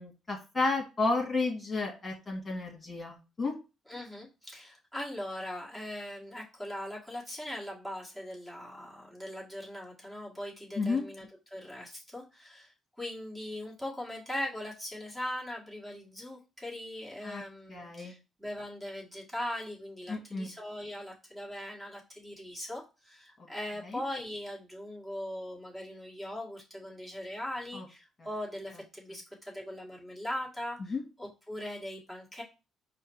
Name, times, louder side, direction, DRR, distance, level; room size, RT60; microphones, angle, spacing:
voice 1, 0.0-3.5 10.8-11.0 17.2-17.4 17.7-18.2 20.1-20.5 23.8-24.0 27.7-27.8 30.8-31.0, left 3 dB, 30° left, -1 dB, 1.5 m, -32 dB
voice 2, 3.9-11.3 11.5-32.4, left 1 dB, 10° right, -4 dB, 1.7 m, -40 dB
4.7 x 2.2 x 4.5 m, 0.30 s
cardioid pair, 90°, 0 cm